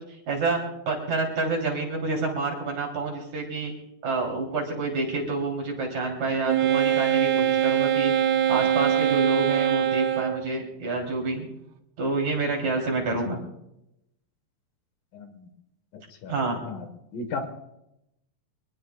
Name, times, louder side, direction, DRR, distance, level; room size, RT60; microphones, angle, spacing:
voice 1, 0.3-0.6 0.9-3.7 4.0-11.5 12.0-13.4 16.3-16.6, right 3 dB, 50° right, 0 dB, 4.5 m, -28 dB
Wind instrument woodwind instrument, 6.5-10.5, right 10 dB, 75° right, 2.8 m, -23 dB
voice 2, 15.1-15.5 15.9-16.3 16.7-16.9 17.1-17.5, left 4 dB, 70° left, 6 dB, 2.9 m, -35 dB
24.5 x 20.5 x 2.4 m, 0.85 s
omnidirectional pair, 4.4 m